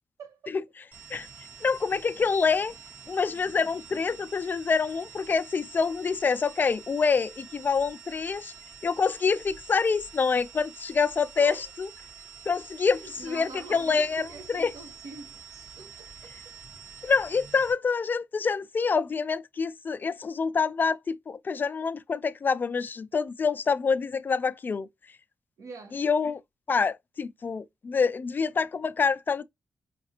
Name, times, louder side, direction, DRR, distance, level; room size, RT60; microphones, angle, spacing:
voice 1, 0.2-0.6 11.4-11.7 12.9-16.4 25.6-26.0, right 3 dB, 80° right, 1.1 m, -44 dB
sound 1, 0.9-17.7, right 6 dB, 40° right, 1.1 m, -47 dB
voice 2, 1.6-2.7 3.1-8.5 8.8-11.9 12.5-14.7 17.0-24.9 25.9-26.4 26.7-29.4, left 5 dB, 35° left, 0.3 m, -26 dB
5.0 x 2.3 x 2.8 m
wide cardioid pair, 130°, 5 cm